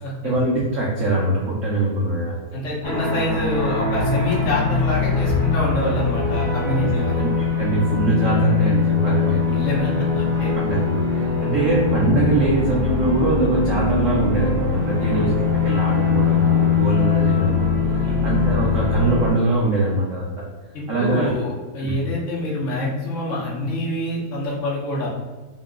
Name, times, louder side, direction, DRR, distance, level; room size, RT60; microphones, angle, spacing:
voice 1, 0.2-2.4 6.8-6.9 7.2-9.4 10.4-20.4 20.9-21.3 21.8-22.0, right 2 dB, 75° right, -4 dB, 0.7 m, -22 dB
voice 2, 2.5-7.2 9.2-10.5 15.0-15.3 18.0-18.3 20.7-25.1, left 1 dB, 50° left, -5 dB, 1.0 m, -26 dB
sound 1, 2.8-19.3, left 5 dB, 20° left, 0.8 m, -21 dB
3.9 x 2.7 x 3.6 m, 1.3 s
omnidirectional pair, 2.3 m